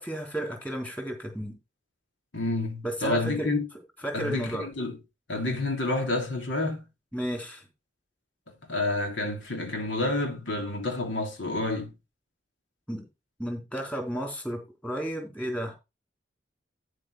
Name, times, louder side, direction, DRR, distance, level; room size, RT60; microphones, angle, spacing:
voice 1, 0.0-1.6 2.8-3.5 4.0-4.7 7.1-7.6 12.9-13.1 13.4-15.8, right 1 dB, 10° left, 3.7 m, -33 dB
voice 2, 2.3-3.7 4.1-5.0 5.3-6.9 8.5-11.9, left 2 dB, 90° left, 3.2 m, -29 dB
12.5 x 5.2 x 4.8 m
head